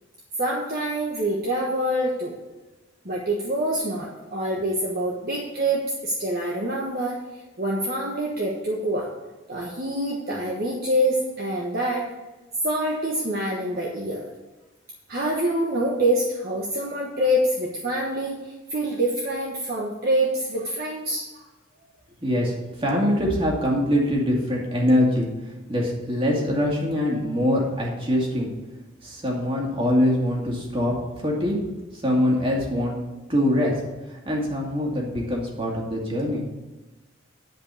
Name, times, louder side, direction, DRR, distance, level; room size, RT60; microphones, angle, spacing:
voice 1, 0.4-2.4 3.0-9.1 9.5-12.1 12.6-14.3 15.1-21.5, right 1 dB, 45° right, -3 dB, 1.3 m, -26 dB
voice 2, 22.2-22.5 22.8-25.3 25.7-28.5 29.0-30.9 31.2-31.6 32.0-33.0 33.3-33.7 34.1-36.4, left 1 dB, 25° right, -2 dB, 2.2 m, -23 dB
10.5 x 5.3 x 6.9 m, 1.1 s
head